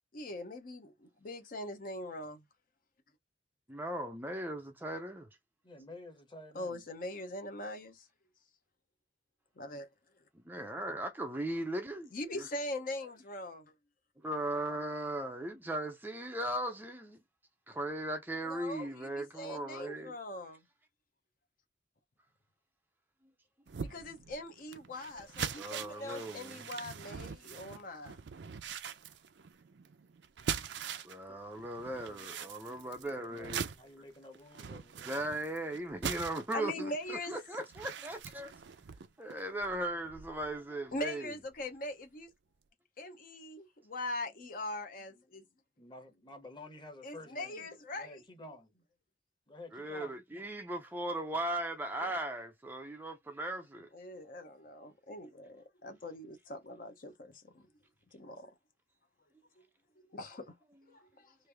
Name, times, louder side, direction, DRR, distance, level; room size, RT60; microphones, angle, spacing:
voice 1, 0.1-2.4 6.5-8.1 9.6-9.9 10.2-10.3 12.1-13.7 18.4-20.6 23.9-28.2 31.3-31.4 32.1-32.2 32.7-32.8 36.5-37.4 40.9-42.3 43.0-45.4 47.0-48.2 52.0-52.1 53.9-57.7 58.1-58.5 60.1-60.5 60.9-61.3, left 1 dB, 50° left, 0.7 m, -42 dB
voice 2, 3.7-5.3 10.5-12.1 14.2-17.2 17.7-20.2 25.6-26.6 31.0-33.7 35.0-38.5 39.2-41.3 49.7-53.9, right 1 dB, 10° right, 0.4 m, -38 dB
voice 3, 5.6-6.8 12.9-13.1 33.0-35.2 45.8-47.7 47.9-48.8 49.5-50.2, left 2 dB, 25° left, 1.1 m, -51 dB
sound 1, 23.7-31.2 31.5-40.5 40.9-41.1 41.5-41.6, right 7 dB, 70° right, 0.5 m, -43 dB
3.2 x 2.5 x 3.4 m
head